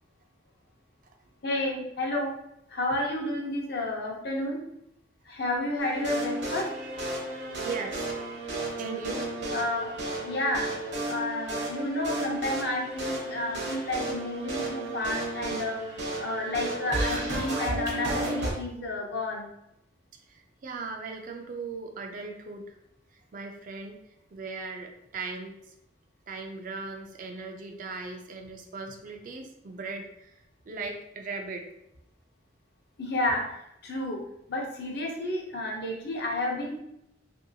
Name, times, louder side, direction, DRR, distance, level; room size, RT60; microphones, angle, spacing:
voice 1, 1.4-2.3 2.7-4.6 5.3-6.7 9.5-9.9 10.2-10.7 11.1-15.8 16.2-19.5 33.0-33.4 33.8-34.2 34.5-36.8, left 1 dB, 55° left, -1 dB, 0.7 m, -31 dB
sound 1, 5.8-18.5, right 1 dB, 65° right, 0.8 m, -33 dB
voice 2, 6.6-9.3 20.3-22.7 23.3-24.0 24.3-25.5 26.3-30.3 30.7-31.7, right 4 dB, 45° right, 3 dB, 0.4 m, -38 dB
3.0 x 2.7 x 2.7 m, 0.82 s
head